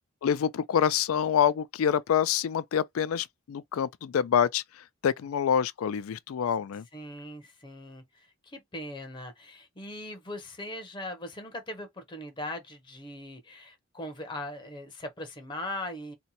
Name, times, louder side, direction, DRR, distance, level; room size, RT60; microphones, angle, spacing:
voice 1, 0.2-6.9, left 8 dB, 80° left, 0.3 m, -26 dB
voice 2, 6.9-16.1, left 1 dB, 20° left, 0.6 m, -40 dB
2.8 x 2.2 x 4.0 m
head